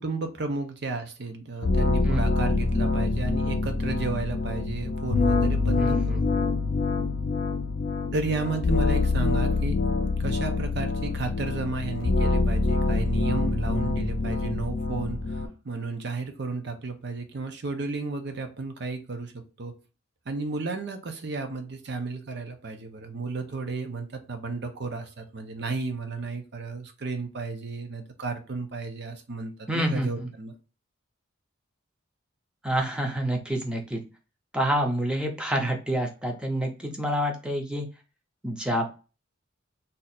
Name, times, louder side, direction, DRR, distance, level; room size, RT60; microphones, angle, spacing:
voice 1, 0.0-6.2 8.1-9.8 10.2-19.7 20.3-30.5, right 3 dB, 55° right, 6 dB, 0.6 m, -33 dB
sound 1, 1.6-15.5, left 3 dB, 50° left, 0.4 m, -25 dB
voice 2, 5.8-6.2 29.7-30.3 32.6-34.0 34.5-37.9 38.4-38.9, right 1 dB, 5° right, 1 dB, 0.6 m, -27 dB
2.7 x 2.4 x 4.1 m, 0.33 s
head